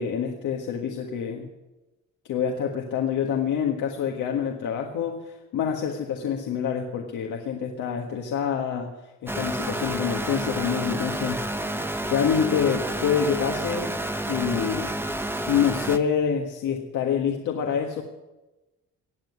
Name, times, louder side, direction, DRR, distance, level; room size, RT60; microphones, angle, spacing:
voice 1, 0.0-1.5 2.3-8.9 9.2-11.4 12.1-14.0 14.3-14.9 15.5-18.0, left 7 dB, 80° left, 1 dB, 1.6 m, -26 dB
sound 1, 9.3-16.0, right 1 dB, 5° right, 1.0 m, -30 dB
19.0 x 7.7 x 9.6 m, 1.1 s
cardioid pair, 90°, 30 cm